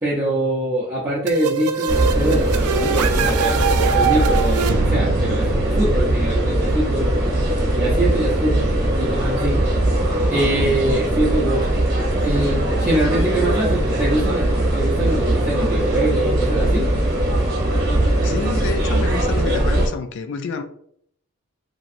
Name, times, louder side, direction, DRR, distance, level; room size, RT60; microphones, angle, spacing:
voice 1, 0.0-3.7 3.9-7.1 7.6-8.7 8.9-9.6 10.3-11.7 12.2-14.5 14.7-16.9, right 1 dB, 15° right, 0.6 m, -23 dB
sound 1, 1.3-6.9, right 5 dB, 85° right, 0.3 m, -23 dB
sound 2, 1.9-19.9, right 1 dB, 50° right, 0.9 m, -20 dB
voice 2, 18.2-20.6, left 5 dB, 55° left, 0.3 m, -28 dB
3.0 x 2.6 x 2.5 m
head